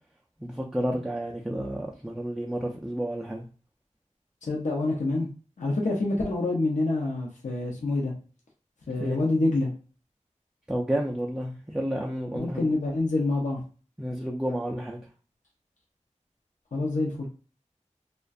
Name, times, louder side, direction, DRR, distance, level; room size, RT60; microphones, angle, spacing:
voice 1, 0.4-3.5 9.0-9.2 10.7-12.7 14.0-15.0, right 1 dB, 5° right, -1 dB, 0.3 m, -31 dB
voice 2, 4.4-5.3 5.6-8.1 8.9-9.7 12.3-13.6 16.7-17.3, left 2 dB, 75° left, -1 dB, 0.5 m, -26 dB
2.3 x 2.1 x 2.5 m, 0.37 s
wide cardioid pair, 70°, 13 cm